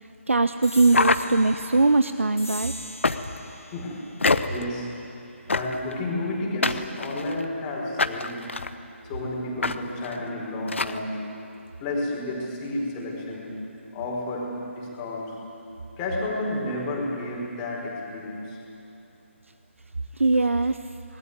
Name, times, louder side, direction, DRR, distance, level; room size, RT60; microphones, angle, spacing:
voice 1, 0.3-2.7 20.2-20.8, right 3 dB, 70° right, 11 dB, 0.9 m, -21 dB
sound 1, 0.6-7.5, left 1 dB, 80° left, 2.4 m, -44 dB
sound 2, 0.9-1.8 3.0-3.5 4.2-4.7 5.5-5.9 6.6-7.4 8.0-8.7 9.6-9.8 10.0-10.2 10.7-11.0, left 3 dB, 65° left, 1.2 m, -25 dB
voice 2, 3.7-4.1 4.4-5.0 5.5-8.4 9.0-11.2 11.8-13.5 13.9-15.4 16.0-18.6, left 1 dB, 15° left, -2 dB, 5.0 m, -31 dB
26.5 x 20.5 x 9.7 m, 2.8 s
figure-of-eight pair, 145°, 7 cm